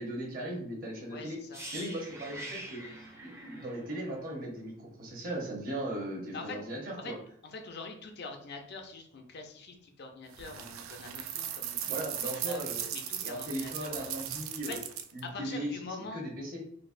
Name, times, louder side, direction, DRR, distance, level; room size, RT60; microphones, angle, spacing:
voice 1, 0.0-1.4 1.7-2.8 3.2-7.2 11.8-12.8 13.2-14.8 15.1-15.7 16.1-16.6, right 1 dB, 45° right, -2 dB, 0.9 m, -38 dB
voice 2, 1.1-1.6 6.3-6.6 7.0-7.1 7.4-12.1 12.5-14.3 14.7-14.8 15.2-16.2, left 3 dB, 55° left, 4 dB, 0.5 m, -44 dB
sound 1, 1.5-5.4 5.6-5.8, right 1 dB, 15° right, 0.5 m, -45 dB
sound 2, 10.3-15.2, right 10 dB, 85° right, 0.3 m, -38 dB
4.0 x 2.0 x 2.5 m, 0.65 s
head